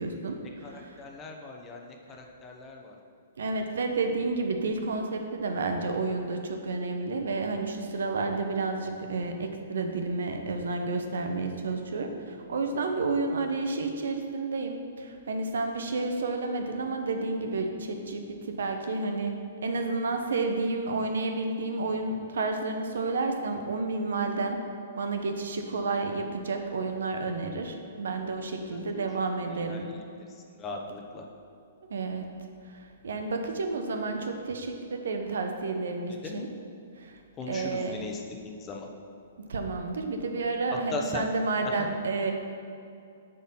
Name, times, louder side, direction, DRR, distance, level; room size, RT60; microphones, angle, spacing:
voice 1, 0.0-1.0 3.4-19.3 19.6-24.6 25.0-29.9 31.9-32.3 32.7-36.5 37.0-37.2 37.5-38.0 39.5-42.3, right 3 dB, 80° right, 5 dB, 0.9 m, -31 dB
voice 2, 0.6-3.0 28.7-28.8 29.5-30.0 30.6-31.2 36.2-36.4 37.4-38.9 40.9-41.2, left 3 dB, 20° left, 1 dB, 0.9 m, -39 dB
8.3 x 3.9 x 5.9 m, 2.5 s
hypercardioid pair, 135°, 0 cm